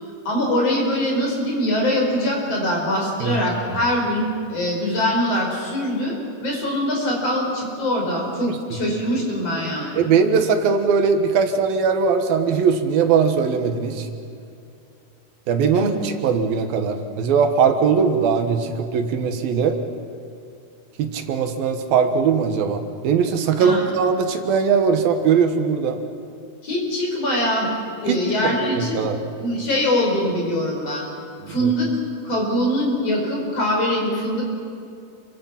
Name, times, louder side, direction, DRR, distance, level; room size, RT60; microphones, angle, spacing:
voice 1, 0.3-6.2 6.4-10.0 15.7-16.0 23.6-23.9 26.6-27.7 28.0-28.9 29.4-31.1 31.5-31.9 32.2-34.4, left 1 dB, 45° left, -1 dB, 6.0 m, -23 dB
voice 2, 10.0-14.1 15.5-19.8 21.0-26.0 28.1-28.2 28.6-29.2 31.6-31.7, right 6 dB, 80° right, 6 dB, 3.3 m, -20 dB
28.0 x 24.0 x 5.9 m, 2.5 s
omnidirectional pair, 4.1 m